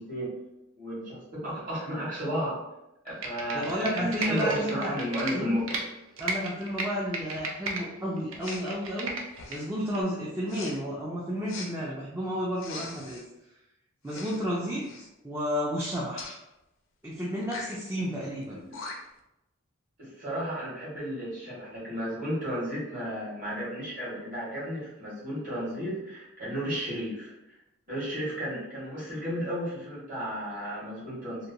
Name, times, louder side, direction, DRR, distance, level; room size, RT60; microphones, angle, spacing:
voice 1, 0.8-2.5 3.0-5.8 18.6-18.8 20.0-27.3 27.9-31.5, equal, 40° right, -9 dB, 1.4 m, -33 dB
Computer keyboard, 3.1-5.8 6.2-7.8 8.2-9.6 9.9-10.0, right 3 dB, 75° right, 0.4 m, -34 dB
voice 2, 3.5-4.9 5.3-5.5 6.2-9.2 9.5-13.2 14.0-14.8 15.2-16.3 17.0-18.6, equal, 10° right, -6 dB, 0.3 m, -32 dB
Respiratory sounds, 8.4-8.7 9.3-9.7 10.5-10.7 11.5-11.7 12.6-13.2 14.0-14.4 14.8-15.1 16.2-16.4 17.4-17.8 18.4-18.5 18.7-19.2, left 3 dB, 65° left, 0.4 m, -41 dB
2.8 x 2.1 x 2.6 m, 0.91 s
head